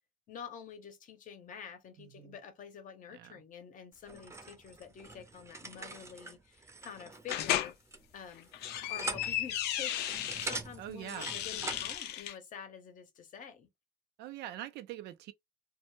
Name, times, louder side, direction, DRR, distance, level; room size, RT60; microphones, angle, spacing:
voice 1, 0.3-7.7 8.1-8.5 8.9-13.7, left 7 dB, 50° left, 0.7 m, -48 dB
voice 2, 2.0-2.4 3.1-3.4 10.8-11.3 14.2-15.3, right 12 dB, 75° right, 0.4 m, -44 dB
sound 1, 4.0-11.9, right 3 dB, 15° right, 0.6 m, -44 dB
sound 2, 7.3-7.7 8.4-10.6 11.1-12.3, left 11 dB, 80° left, 0.4 m, -35 dB
2.1 x 2.0 x 3.0 m
cardioid pair, 110°, 17 cm